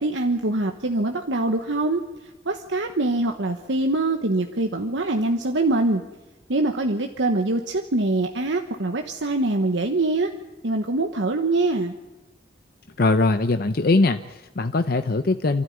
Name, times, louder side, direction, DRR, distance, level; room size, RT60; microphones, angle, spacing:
voice 1, 0.0-2.0 2.4-6.0 6.5-10.3 10.6-11.9, right 2 dB, 80° right, 5 dB, 1.2 m, -24 dB
voice 2, 13.0-15.6, left 3 dB, 55° left, 8 dB, 0.7 m, -21 dB
28.0 x 13.0 x 9.7 m, 1.1 s
head